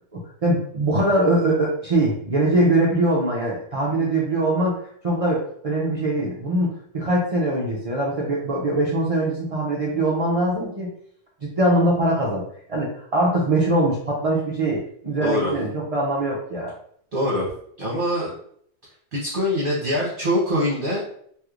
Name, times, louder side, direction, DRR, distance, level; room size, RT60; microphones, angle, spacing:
voice 1, 0.1-10.9 11.4-12.4 12.7-16.7, right 1 dB, 65° right, -4 dB, 0.3 m, -22 dB
voice 2, 15.2-15.5 17.1-17.5 17.8-18.3 19.1-21.0, equal, 45° right, -6 dB, 1.0 m, -23 dB
3.1 x 3.1 x 2.4 m, 0.64 s
omnidirectional pair, 1.5 m